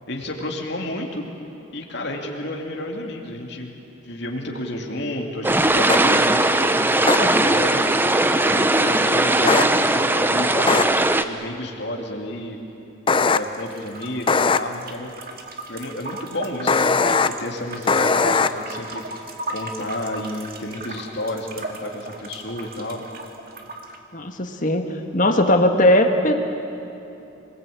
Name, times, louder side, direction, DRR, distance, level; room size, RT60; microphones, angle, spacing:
voice 1, 0.1-1.2 1.7-3.7 4.0-7.9 8.4-10.8 11.2-12.6 13.2-15.1 15.7-19.0 19.5-23.0, left 1 dB, 55° left, 1 dB, 2.7 m, -31 dB
sound 1, 5.4-11.2, right 2 dB, 10° right, 0.7 m, -19 dB
sound 2, 5.9-6.0 7.1-7.2 9.5-9.6 10.7-10.8 13.1-13.4 14.3-14.6 16.7-17.3 17.9-18.5, left 4 dB, 25° left, 0.5 m, -18 dB
sound 3, 13.4-24.0, right 2 dB, 45° right, 2.2 m, -37 dB
voice 2, 24.1-26.3, left 1 dB, 40° left, 5 dB, 1.8 m, -19 dB
26.5 x 20.0 x 8.6 m, 2.9 s
head